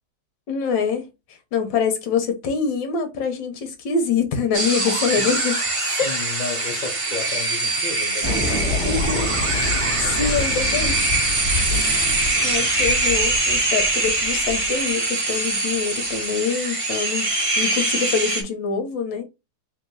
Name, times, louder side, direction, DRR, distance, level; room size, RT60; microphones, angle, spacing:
voice 1, 0.5-1.1 1.5-5.6 6.0-6.1 8.8-9.3 10.0-11.0 11.7-12.1 12.4-17.3 17.6-19.2, left 6 dB, 70° left, 1.7 m, -25 dB
sound 1, 4.5-18.4, right 2 dB, 30° right, 0.6 m, -23 dB
voice 2, 5.8-9.3 10.0-10.5, left 5 dB, 90° left, 0.4 m, -34 dB
sound 2, 8.2-14.8, left 2 dB, 5° left, 1.6 m, -28 dB
4.5 x 3.1 x 3.8 m
omnidirectional pair, 2.2 m